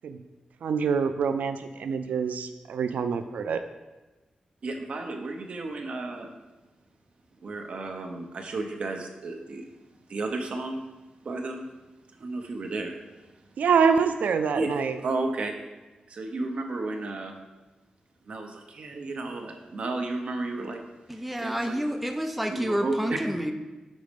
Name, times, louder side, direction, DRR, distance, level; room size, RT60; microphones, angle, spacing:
voice 1, 0.6-3.6 13.6-15.0, right 6 dB, 90° right, 9 dB, 0.3 m, -25 dB
voice 2, 4.6-6.3 7.4-9.6 10.1-10.8 11.2-11.7 12.2-13.2 14.5-15.5 16.1-17.3 18.3-20.8 21.4-21.8 22.5-23.0, right 2 dB, 50° right, 3 dB, 0.7 m, -33 dB
voice 3, 21.1-23.5, equal, 5° right, 5 dB, 0.3 m, -29 dB
6.2 x 4.1 x 5.1 m, 1.1 s
wide cardioid pair, 175°, 3 cm